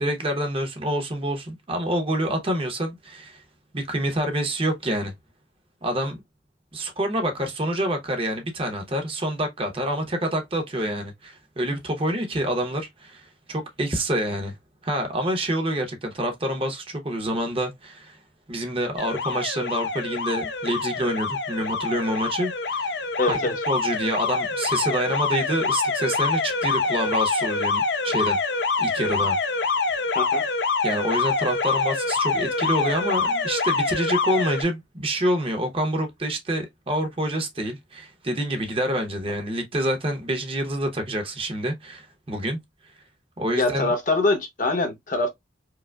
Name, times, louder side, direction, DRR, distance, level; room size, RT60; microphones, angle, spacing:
voice 1, 0.0-3.4 3.7-5.1 5.8-6.2 6.7-14.5 14.8-18.2 18.5-22.9 23.3-23.4 23.7-28.4 28.8-29.4 30.8-42.6 43.4-43.9, right 1 dB, 30° right, 0.8 m, -27 dB
Alarm, 19.0-34.6, left 4 dB, 65° left, 0.6 m, -25 dB
voice 2, 23.2-23.6 30.1-30.5 43.6-45.3, left 2 dB, 45° left, 0.9 m, -24 dB
4.6 x 2.1 x 2.3 m
head